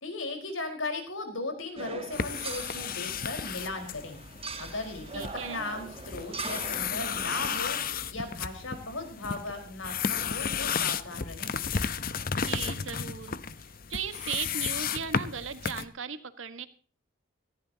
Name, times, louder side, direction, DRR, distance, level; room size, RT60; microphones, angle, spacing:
voice 1, 0.0-4.2 4.6-7.8 8.1-11.6, left 2 dB, 85° left, 5 dB, 4.7 m, -37 dB
sound 1, 1.8-7.6, right 4 dB, 30° right, 1.3 m, -42 dB
sound 2, 2.1-15.8, left 6 dB, 45° left, 0.8 m, -33 dB
voice 2, 5.1-5.6 12.4-13.3 13.9-16.7, right 7 dB, 80° right, 10 dB, 1.6 m, -37 dB
18.5 x 15.0 x 2.9 m, 0.41 s
head